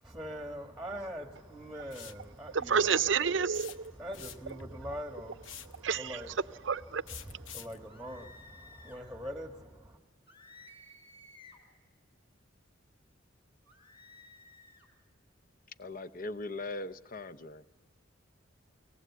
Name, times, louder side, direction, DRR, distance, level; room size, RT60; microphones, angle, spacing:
voice 1, 0.0-3.5 3.9-6.4 7.2-10.0, equal, ahead, 1.4 m, -43 dB
sound 1, 1.9-2.2 3.5-4.6 5.4-5.8 7.1-7.8, left 9 dB, 85° left, 1.0 m, -46 dB
voice 2, 2.5-3.9 5.8-6.2 6.6-7.0 7.3-7.5, right 6 dB, 70° right, 0.6 m, -29 dB
sound 2, 7.8-9.0 10.3-11.7 13.7-14.9, left 2 dB, 25° left, 3.8 m, -55 dB
voice 3, 15.8-17.6, left 2 dB, 45° left, 0.8 m, -40 dB
23.5 x 18.0 x 8.2 m
head